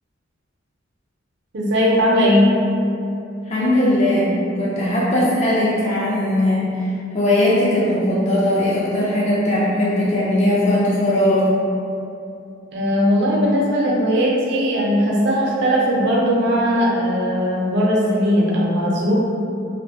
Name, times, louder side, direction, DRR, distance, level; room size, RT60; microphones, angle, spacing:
voice 1, 1.5-2.5 12.7-19.1, equal, 65° right, -4 dB, 0.5 m, -18 dB
voice 2, 3.5-6.9 7.1-11.5, left 1 dB, 35° left, -8 dB, 0.4 m, -19 dB
2.5 x 2.1 x 2.7 m, 2.6 s
head